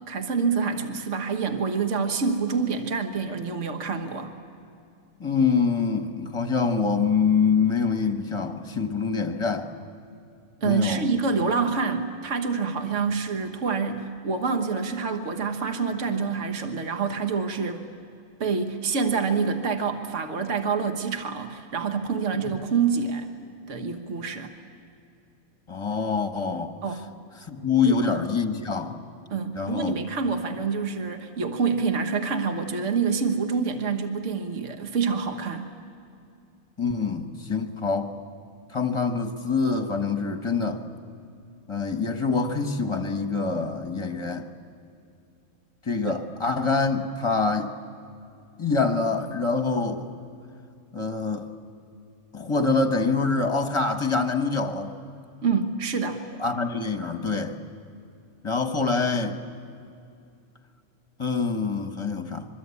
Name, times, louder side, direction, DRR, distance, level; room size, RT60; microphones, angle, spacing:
voice 1, 0.1-4.3 10.6-17.8 18.4-23.3 23.7-24.5 26.8-27.0 27.8-28.2 29.3-35.7 46.0-46.2 55.4-56.2, right 5 dB, 60° right, 6 dB, 1.7 m, -27 dB
voice 2, 5.2-9.7 10.6-11.1 22.4-22.5 25.7-26.8 27.5-29.0 29.5-30.0 36.8-38.1 38.7-40.8 41.7-44.5 45.8-47.7 48.6-50.1 50.9-51.5 52.3-54.9 56.4-57.6 58.4-59.4 61.2-62.5, left 4 dB, 20° left, 6 dB, 1.3 m, -25 dB
25.0 x 23.5 x 8.4 m, 2.5 s
omnidirectional pair, 1.5 m